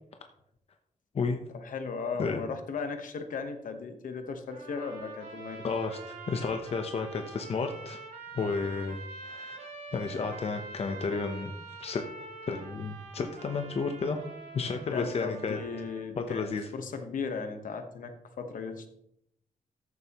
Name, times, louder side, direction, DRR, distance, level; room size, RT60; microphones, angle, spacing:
voice 1, 1.5-5.6 14.9-18.9, left 5 dB, 70° left, 7 dB, 1.2 m, -36 dB
sound 1, 4.5-16.0, right 3 dB, 85° right, 3.4 m, -45 dB
voice 2, 5.6-8.0 8.3-11.5 11.8-12.0 12.5-14.2 14.5-15.6 16.2-16.7, left 4 dB, 45° left, 5 dB, 0.8 m, -32 dB
14.0 x 7.7 x 3.0 m, 0.76 s
wide cardioid pair, 175°, 14 cm